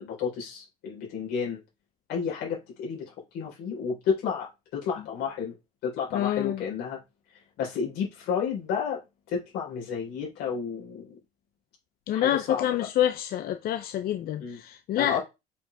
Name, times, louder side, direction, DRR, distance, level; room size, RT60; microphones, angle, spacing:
voice 1, 0.0-1.6 2.1-5.5 5.8-7.0 7.6-9.0 9.3-11.2 12.1-12.9 14.4-14.6 15.0-15.2, left 6 dB, 85° left, 4.1 m, -31 dB
voice 2, 6.1-6.6 12.1-15.2, left 11 dB, 60° left, 0.6 m, -27 dB
7.1 x 4.6 x 3.4 m
cardioid pair, 110°, 17 cm